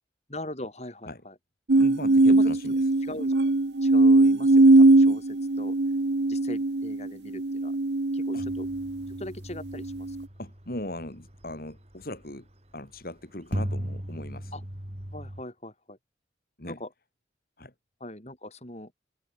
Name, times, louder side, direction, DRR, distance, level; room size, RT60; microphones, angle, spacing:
voice 1, 0.3-1.3 2.3-2.5 3.0-3.3 3.8-5.8 6.3-7.7 8.1-8.7 9.1-10.1 14.5-14.6 15.1-16.0 16.7-16.9 18.0-18.9, left 1 dB, 40° left, 6.5 m, -40 dB
sound 1, 1.7-9.1 9.7-10.2, right 2 dB, 75° right, 1.0 m, -21 dB
voice 2, 1.8-2.9 8.3-8.5 10.4-12.5 12.7-14.5 16.6-16.8 17.6-17.7, left 1 dB, 55° left, 4.6 m, -39 dB
sound 2, 8.4-12.3 12.9-13.0 13.5-15.4, equal, 35° right, 3.4 m, -38 dB
head